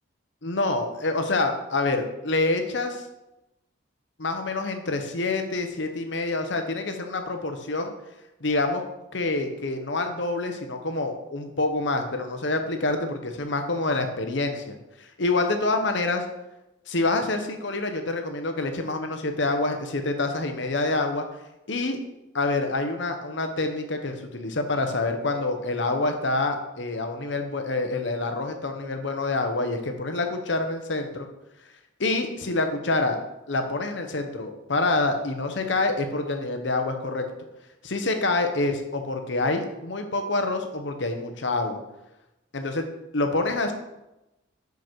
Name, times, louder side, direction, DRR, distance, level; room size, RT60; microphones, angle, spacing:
voice 1, 0.4-3.0 4.2-7.9 8.4-8.8 9.1-16.2 16.9-21.2 21.7-22.0 22.3-31.3 32.0-33.2 33.5-37.3 37.8-41.8 42.5-42.8 43.1-43.7, left 2 dB, 65° left, 6 dB, 1.0 m, -27 dB
5.3 x 5.2 x 6.1 m, 0.95 s
head